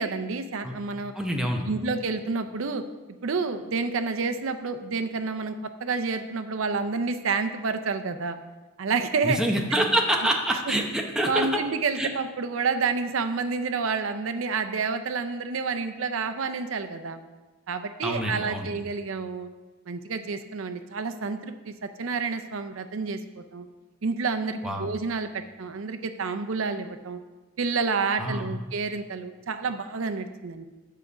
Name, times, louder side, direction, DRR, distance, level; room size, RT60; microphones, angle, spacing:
voice 1, 0.0-1.1 1.7-2.8 3.2-5.5 5.8-8.4 8.8-9.4 11.3-17.2 17.7-19.5 19.9-23.7 24.0-27.2 27.6-30.7, right 4 dB, 75° right, 8 dB, 0.5 m, -29 dB
voice 2, 1.1-1.7 9.2-11.6 12.0-12.1 18.0-18.7 24.6-24.9 28.2-28.5, right 1 dB, 5° right, 1 dB, 0.8 m, -26 dB
7.6 x 4.9 x 6.8 m, 1.2 s
head